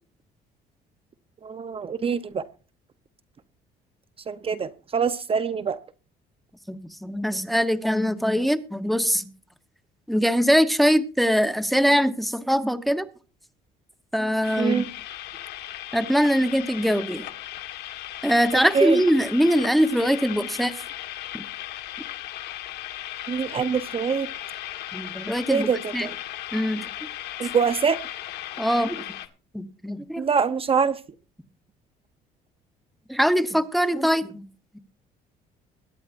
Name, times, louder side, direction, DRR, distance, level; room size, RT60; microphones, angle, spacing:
voice 1, 1.4-2.4 4.3-5.8 14.6-14.9 18.5-19.0 23.3-24.3 25.5-26.1 27.4-28.0 30.2-31.0, right 6 dB, 35° right, 0.8 m, -24 dB
voice 2, 6.7-9.3 10.1-13.1 14.1-14.8 15.9-17.2 18.2-20.8 21.3-21.4 24.9-26.1 26.5-26.8 28.6-29.0 29.5-30.2 33.1-34.4, equal, ahead, 1.0 m, -22 dB
sound 1, 14.4-29.3, left 13 dB, 75° left, 1.6 m, -37 dB
22.0 x 10.0 x 2.6 m
cardioid pair, 110°, 17 cm